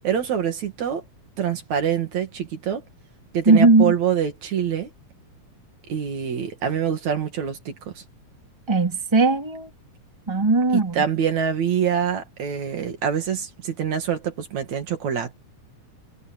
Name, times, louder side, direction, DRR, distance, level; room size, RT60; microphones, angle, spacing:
voice 1, 0.0-1.0 1.4-2.8 3.3-4.9 5.9-8.0 10.7-15.3, right 8 dB, 65° right, 3.3 m, -25 dB
voice 2, 3.5-3.9 8.7-9.7 10.3-11.0, right 3 dB, 10° right, 2.6 m, -18 dB
omnidirectional pair, 3.6 m